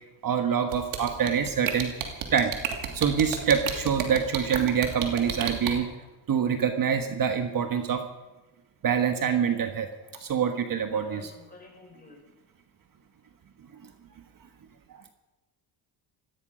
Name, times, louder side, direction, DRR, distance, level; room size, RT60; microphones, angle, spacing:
voice 1, 0.2-1.9 2.3-2.5 2.8-5.9 6.3-8.0 8.8-9.9 10.1-11.3 13.7-13.9, right 7 dB, 45° right, 6 dB, 1.5 m, -25 dB
sound 1, 0.7-5.7, right 10 dB, 75° right, 2.9 m, -30 dB
voice 2, 10.9-12.2, left 3 dB, 20° left, 1 dB, 5.7 m, -49 dB
17.0 x 15.5 x 5.1 m, 1.1 s
cardioid pair, 95°, 47 cm